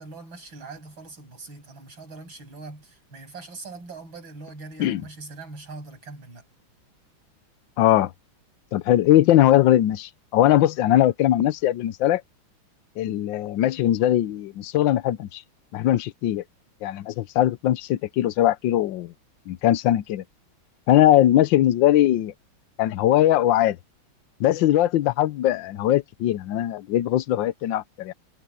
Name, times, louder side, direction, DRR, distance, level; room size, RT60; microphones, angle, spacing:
voice 1, 0.0-6.4, right 3 dB, 65° right, 7.8 m, -42 dB
voice 2, 7.8-8.1 8.7-12.2 13.0-15.4 15.7-16.4 16.8-19.1 19.5-20.2 20.9-22.3 22.8-23.8 24.4-28.1, left 13 dB, 70° left, 1.4 m, -20 dB
omnidirectional pair, 2.3 m